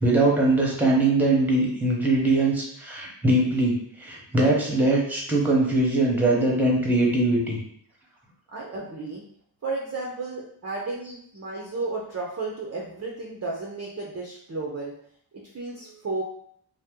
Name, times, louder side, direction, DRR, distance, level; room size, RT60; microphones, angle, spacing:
voice 1, 0.0-3.7 4.0-7.6, right 2 dB, 5° right, -3 dB, 0.9 m, -21 dB
voice 2, 8.5-9.2 9.6-14.9 15.3-16.2, right 3 dB, 35° right, -3 dB, 0.5 m, -33 dB
2.8 x 2.1 x 3.5 m, 0.65 s
wide cardioid pair, 90°, 45 cm